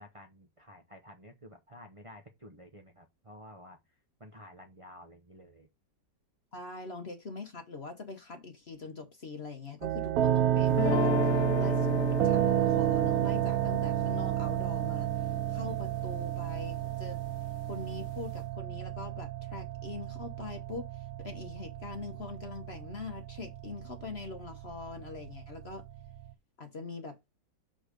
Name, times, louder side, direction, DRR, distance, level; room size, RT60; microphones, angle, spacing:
voice 1, 0.0-3.8 4.2-5.7, equal, 45° right, 0.4 m, -52 dB
voice 2, 6.5-17.2 17.6-25.8 26.6-27.2, left 3 dB, 40° left, 1.0 m, -43 dB
sound 1, 9.8-26.3, right 12 dB, 70° right, 0.9 m, -31 dB
sound 2, 10.7-16.8, left 8 dB, 70° left, 1.1 m, -35 dB
6.4 x 3.9 x 5.1 m
omnidirectional pair, 2.1 m